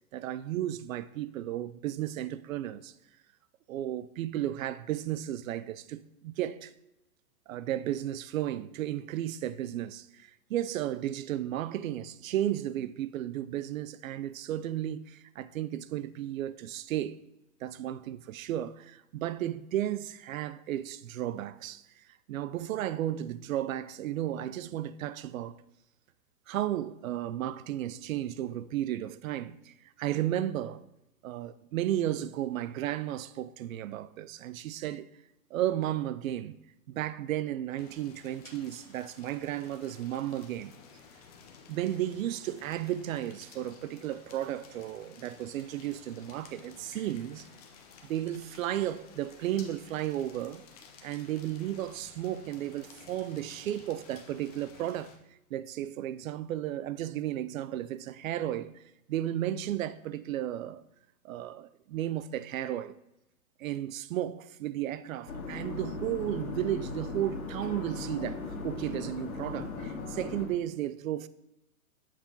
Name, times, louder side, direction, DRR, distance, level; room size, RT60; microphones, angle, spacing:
voice 1, 0.1-2.9 3.7-6.7 7.5-17.2 17.6-21.8 22.3-25.6 26.5-30.8 31.2-35.1 35.5-36.6 36.9-40.8 41.7-47.5 48.0-50.6 51.0-55.1 55.5-58.8 59.1-60.8 61.2-63.0 63.6-71.3, right 12 dB, 65° right, 0.5 m, -34 dB
sound 1, 37.8-55.2, left 6 dB, 25° left, 0.5 m, -54 dB
sound 2, 65.3-70.5, left 4 dB, 70° left, 1.6 m, -38 dB
7.5 x 4.2 x 3.8 m
hypercardioid pair, 155°, 44 cm